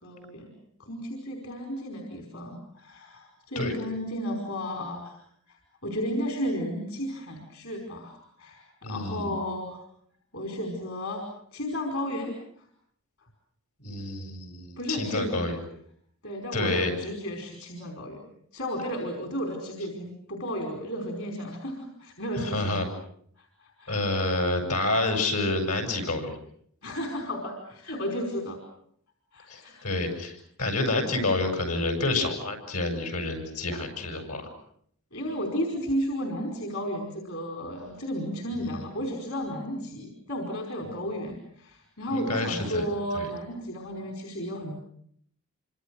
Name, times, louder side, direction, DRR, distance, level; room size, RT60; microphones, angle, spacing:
voice 1, 0.0-0.5 0.8-5.2 5.5-9.8 10.3-12.7 14.8-15.5 16.2-18.3 18.5-22.8 23.4-24.4 26.8-28.6 29.3-30.1 35.1-44.8, equal, 70° left, 2 dB, 5.1 m, -33 dB
voice 2, 8.8-9.4 13.8-15.6 16.5-16.9 22.4-22.9 23.9-26.4 29.5-34.5 40.9-41.0 42.1-42.8 43.1-43.3, left 2 dB, 85° left, 5 dB, 7.6 m, -28 dB
27.0 x 26.5 x 6.6 m, 0.66 s
head